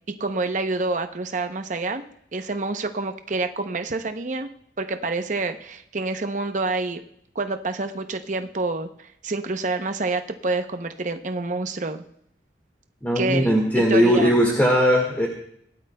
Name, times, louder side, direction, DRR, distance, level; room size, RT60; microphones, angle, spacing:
voice 1, 0.2-2.1 2.3-4.5 4.8-7.0 7.3-12.0 13.2-14.3, right 3 dB, 45° right, 7 dB, 0.7 m, -27 dB
voice 2, 13.0-15.3, equal, 10° left, -1 dB, 1.7 m, -19 dB
19.0 x 12.0 x 2.3 m, 0.72 s
head